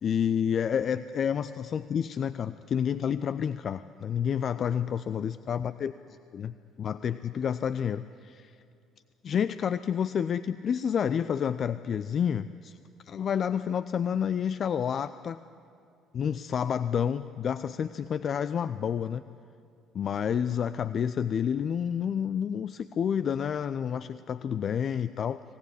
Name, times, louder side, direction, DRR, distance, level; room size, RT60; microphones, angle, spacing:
voice 1, 0.0-5.9 6.3-8.5 9.2-12.8 13.1-15.4 16.1-19.2 19.9-25.4, left 8 dB, 45° left, 14 dB, 0.5 m, -29 dB
25.0 x 18.0 x 10.0 m, 2.5 s
figure-of-eight pair, 50°, 0 cm